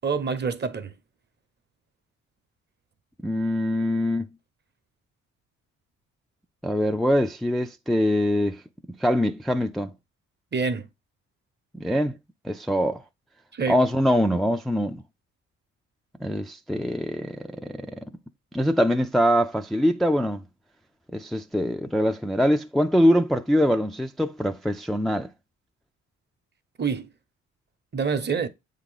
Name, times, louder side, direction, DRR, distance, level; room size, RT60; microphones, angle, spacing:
voice 1, 0.0-0.9 10.5-10.9 13.5-13.8 26.8-27.1 27.9-28.5, right 5 dB, 35° right, 0.9 m, -26 dB
voice 2, 3.2-4.3 6.6-8.6 9.0-9.9 11.7-12.2 12.4-13.0 13.7-15.0 16.2-18.1 18.5-20.4 21.1-25.3, equal, ahead, 0.4 m, -23 dB
7.9 x 3.7 x 3.9 m
cardioid pair, 90°, 30 cm